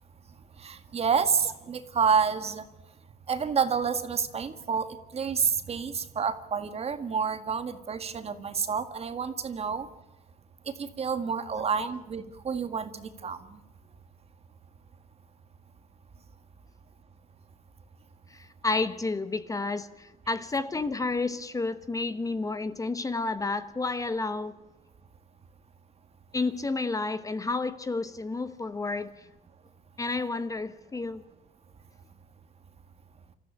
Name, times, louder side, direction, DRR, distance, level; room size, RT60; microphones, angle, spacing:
voice 1, 0.6-2.6 3.3-4.9 5.1-9.9 10.8-13.6, right 6 dB, 35° right, 1.9 m, -29 dB
voice 2, 11.5-11.9 18.3-24.5 26.3-29.3 30.0-31.2, left 3 dB, 20° left, 1.1 m, -31 dB
27.0 x 14.0 x 10.0 m
cardioid pair, 110°, 17 cm